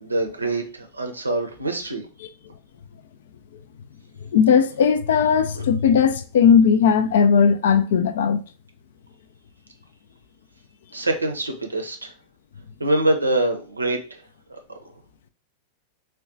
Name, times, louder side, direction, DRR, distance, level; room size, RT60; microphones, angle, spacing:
voice 1, 0.0-2.1 5.6-5.7 10.9-12.1 12.8-14.0, right 2 dB, 80° right, 0.5 m, -24 dB
voice 2, 4.3-8.4, left 6 dB, 60° left, 0.3 m, -17 dB
3.6 x 2.2 x 2.6 m
figure-of-eight pair, 90°, 0 cm